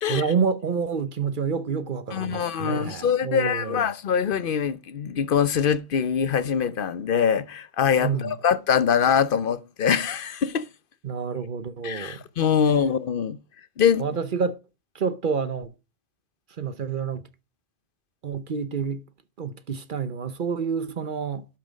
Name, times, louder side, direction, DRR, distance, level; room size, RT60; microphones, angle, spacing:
voice 1, 0.0-3.8 8.0-8.3 11.0-12.2 14.0-14.6 14.9-15.7 16.6-17.2 18.2-19.0 19.4-21.4, right 6 dB, 50° right, 0.9 m, -28 dB
voice 2, 2.1-10.7 11.8-13.4 13.8-14.0, left 7 dB, 55° left, 0.8 m, -23 dB
12.0 x 6.0 x 5.1 m
omnidirectional pair, 1.2 m